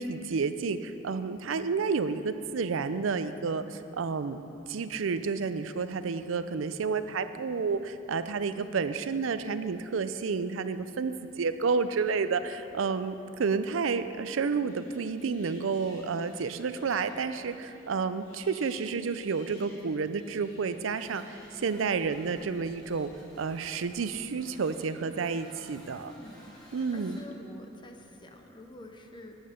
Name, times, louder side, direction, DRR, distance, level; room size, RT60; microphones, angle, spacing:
voice 1, 0.0-4.4 4.7-23.1 23.4-26.1 26.7-27.2, right 5 dB, 85° right, 11 dB, 0.5 m, -30 dB
voice 2, 8.5-9.1 26.1-29.3, left 1 dB, 25° left, 4 dB, 0.7 m, -49 dB
sound 1, 14.6-23.1 23.7-24.4, left 2 dB, 85° left, 2.4 m, -58 dB
sound 2, 20.6-27.6, equal, 5° left, 2.6 m, -55 dB
12.0 x 8.9 x 5.1 m, 2.8 s
head